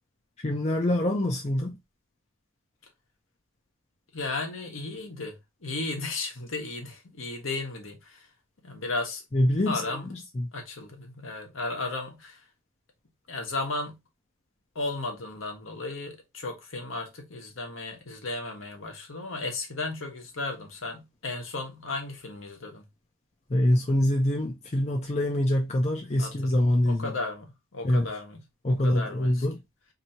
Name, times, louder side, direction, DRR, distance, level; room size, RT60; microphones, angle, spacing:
voice 1, 0.4-1.8 9.3-10.5 23.5-27.1 27.8-28.1 28.6-29.6, left 1 dB, 30° left, 0.5 m, -25 dB
voice 2, 4.1-5.3 5.6-8.2 8.6-9.2 9.7-10.1 10.5-12.4 13.3-14.0 14.7-22.8 26.2-29.4, left 3 dB, 70° left, 1.2 m, -35 dB
3.0 x 2.7 x 4.3 m
head